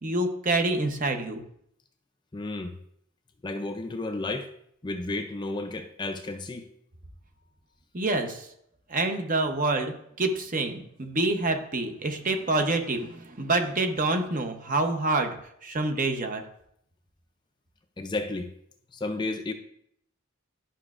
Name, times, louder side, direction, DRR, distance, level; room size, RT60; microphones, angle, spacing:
voice 1, 0.0-1.4 7.9-8.5 8.9-15.4 15.6-16.4, right 2 dB, 40° right, 5 dB, 0.8 m, -27 dB
voice 2, 2.3-2.7 3.4-4.5 4.8-6.6 18.0-18.5 18.9-19.5, left 2 dB, 20° left, 6 dB, 0.4 m, -32 dB
11.5 x 5.7 x 2.5 m, 0.71 s
head